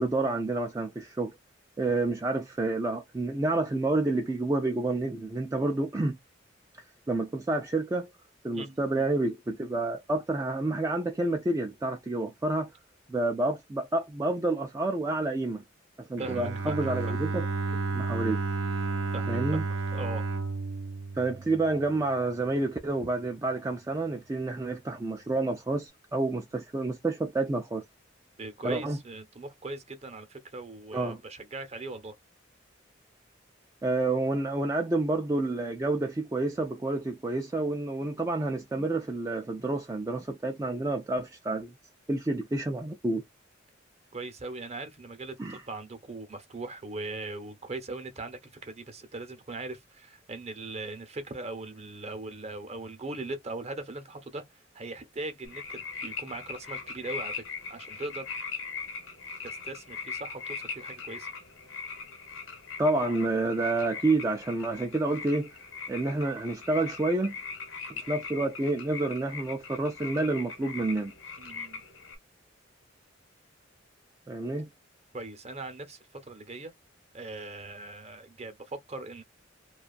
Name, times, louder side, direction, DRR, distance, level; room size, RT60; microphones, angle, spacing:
voice 1, 0.0-1.3 1.8-6.2 7.1-8.1 8.4-12.7 13.1-15.6 16.0-17.5 17.9-18.4 19.3-19.6 21.1-27.8 28.6-29.0 30.9-31.2 33.8-41.7 42.1-43.2 45.4-45.6 62.8-65.5 65.9-67.4 67.9-71.1 74.3-74.7, right 2 dB, 15° right, 0.3 m, -29 dB
voice 2, 8.5-9.0 16.2-17.2 19.1-20.3 23.0-23.1 28.4-32.2 44.1-54.4 54.7-58.3 59.4-61.3 71.4-71.8 75.1-76.7 77.1-79.2, right 2 dB, 35° right, 0.7 m, -40 dB
Bowed string instrument, 16.2-22.1, right 3 dB, 80° right, 0.5 m, -32 dB
sound 1, 55.4-72.2, left 5 dB, 85° left, 1.0 m, -40 dB
2.5 x 2.3 x 2.3 m
head